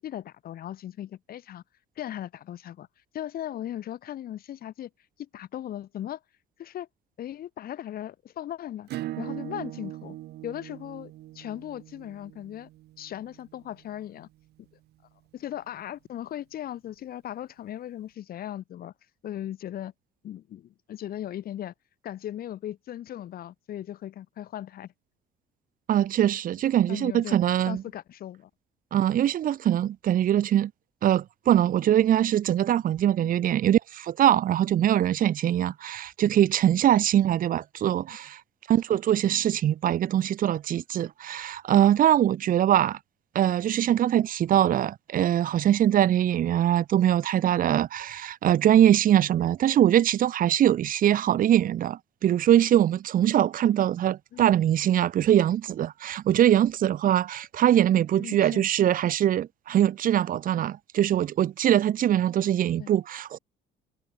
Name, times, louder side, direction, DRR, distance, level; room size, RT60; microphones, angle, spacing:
voice 1, 0.0-1.6 2.0-2.9 3.1-4.9 5.2-6.2 6.6-6.9 7.2-8.9 9.2-10.2 10.4-12.7 13.0-14.3 14.6-14.7 15.3-18.9 19.2-19.9 20.2-21.7 22.0-24.9 26.9-27.4 27.7-28.5 33.2-33.4 36.7-36.8 54.3-54.5 58.2-58.7 62.8-62.9, left 11 dB, 60° left, 7.1 m, -38 dB
Acoustic guitar / Strum, 8.9-14.1, right 15 dB, 75° right, 6.2 m, -40 dB
voice 2, 25.9-27.8 28.9-30.7 31.0-38.4 38.7-43.0 43.3-63.4, right 11 dB, 55° right, 1.5 m, -22 dB
cardioid pair, 110°, 17 cm